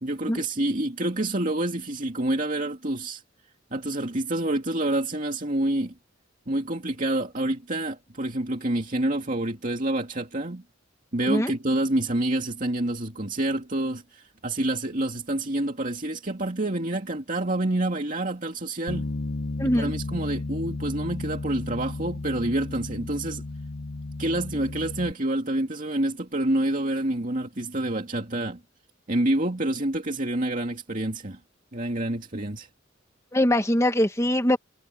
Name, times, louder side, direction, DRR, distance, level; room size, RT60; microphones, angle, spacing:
voice 1, 0.0-3.2 3.7-5.9 6.5-10.6 11.1-19.1 19.7-23.4 24.2-28.6 29.1-31.4 31.7-32.7, right 1 dB, 40° right, 2.3 m, -27 dB
Bass guitar, 18.9-25.1, left 2 dB, 60° left, 0.9 m, -33 dB
voice 2, 19.6-19.9 33.3-34.6, left 1 dB, 15° left, 1.8 m, -22 dB
head